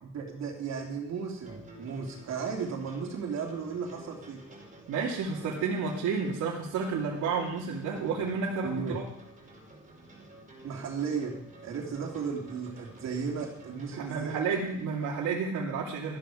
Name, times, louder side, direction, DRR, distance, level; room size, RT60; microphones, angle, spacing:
voice 1, 0.1-4.4 8.6-9.0 10.6-11.3 11.6-14.6, right 5 dB, 65° right, 1 dB, 3.2 m, -35 dB
sound 1, 1.3-15.2, right 1 dB, 25° right, 5.0 m, -51 dB
voice 2, 4.9-9.0 13.9-16.2, right 5 dB, 80° right, -4 dB, 2.6 m, -31 dB
13.5 x 12.0 x 5.1 m, 0.75 s
cardioid pair, 110°, 30 cm